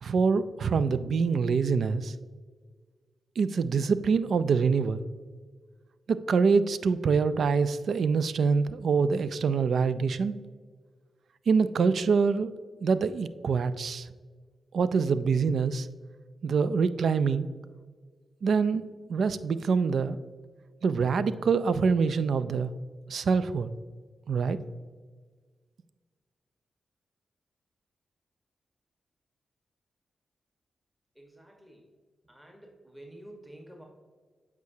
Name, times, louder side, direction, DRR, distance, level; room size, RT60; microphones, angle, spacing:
voice 1, 0.0-2.1 3.4-5.0 6.1-10.3 11.5-12.5 12.8-14.1 14.7-15.9 16.4-17.5 18.4-20.2 20.8-22.7 23.1-23.7 24.3-24.6, right 5 dB, 70° right, 14 dB, 0.3 m, -25 dB
voice 2, 31.1-31.9 32.2-33.8, right 1 dB, 15° right, 1 dB, 1.3 m, -50 dB
8.1 x 4.7 x 2.8 m, 1.5 s
supercardioid pair, 45°, 0 cm